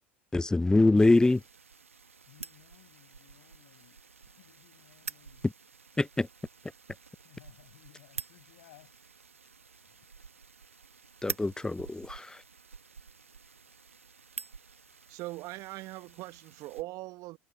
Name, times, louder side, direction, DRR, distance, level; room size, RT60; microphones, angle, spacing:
voice 1, 0.3-1.4 6.0-6.3 11.2-12.4, left 2 dB, 10° left, 0.8 m, -24 dB
sound 1, 1.0-16.8, right 5 dB, 90° right, 1.5 m, -47 dB
voice 2, 2.3-5.5 7.2-9.0 9.9-10.1, left 18 dB, 70° left, 7.7 m, -60 dB
voice 3, 15.1-17.4, right 20 dB, 55° right, 1.6 m, -41 dB
figure-of-eight pair, 70°, 7 cm